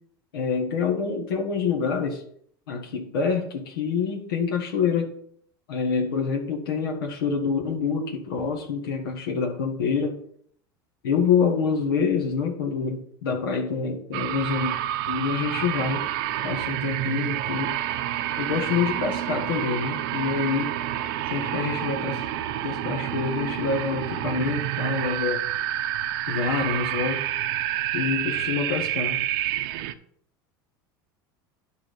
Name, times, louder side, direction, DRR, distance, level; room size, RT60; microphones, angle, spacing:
voice 1, 0.3-2.2 2.7-5.1 5.7-10.2 11.0-14.7 15.1-16.1 16.4-17.8 18.4-20.8 21.3-22.2 22.6-25.4 26.3-27.2 27.9-29.2, left 5 dB, 85° left, 0 dB, 1.6 m, -26 dB
sound 1, 14.1-29.9, right 12 dB, 70° right, 0.7 m, -28 dB
10.5 x 4.9 x 5.2 m, 0.63 s
hypercardioid pair, 90°, 12 cm